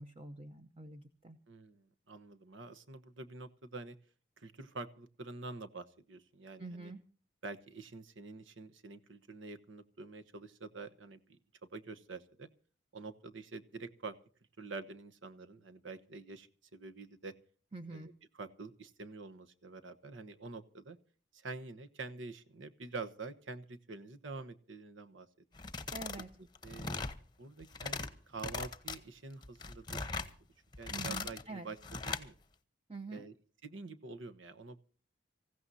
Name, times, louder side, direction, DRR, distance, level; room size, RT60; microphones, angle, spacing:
voice 1, 0.0-1.4 6.6-7.0 17.7-18.1 25.9-26.3 30.9-31.7 32.9-33.3, right 3 dB, 30° right, 6 dB, 0.8 m, -46 dB
voice 2, 1.5-4.0 4.4-6.9 7.4-11.4 11.7-12.5 12.9-14.2 14.6-17.3 17.9-21.0 21.3-25.3 26.6-27.0 27.4-30.3 30.8-32.3 33.1-33.3 33.6-34.8, right 3 dB, 75° right, 11 dB, 1.1 m, -47 dB
sound 1, 25.5-26.2 26.5-27.2 27.6-28.1 28.4-29.0 29.4-30.3 30.7-31.4 31.8-32.3, left 4 dB, 20° left, 0.9 m, -39 dB
26.0 x 15.5 x 2.8 m, 0.42 s
head